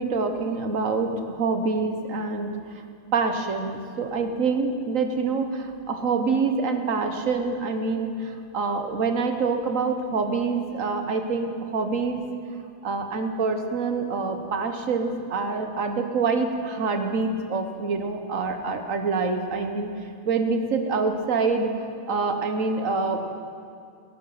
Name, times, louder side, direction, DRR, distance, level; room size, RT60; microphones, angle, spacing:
voice 1, 0.0-2.6 3.1-12.2 12.8-19.9 20.2-23.2, right 4 dB, 80° right, 6 dB, 1.6 m, -26 dB
18.5 x 11.5 x 5.7 m, 2.4 s
omnidirectional pair, 1.4 m